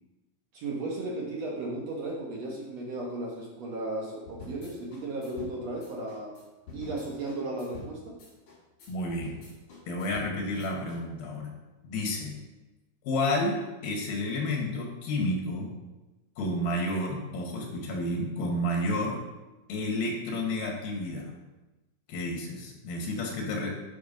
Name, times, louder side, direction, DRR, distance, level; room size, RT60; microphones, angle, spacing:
voice 1, 0.5-6.3 6.7-8.2, right 2 dB, 60° right, -2 dB, 2.0 m, -35 dB
sound 1, 4.3-11.0, left 3 dB, 55° left, 4.1 m, -46 dB
voice 2, 8.9-9.4 9.9-11.5 11.8-12.3 13.0-15.7 16.4-19.2 19.7-21.3 22.1-23.7, left 1 dB, 90° left, 0 dB, 3.6 m, -31 dB
9.3 x 6.1 x 5.3 m, 1.1 s
omnidirectional pair, 4.1 m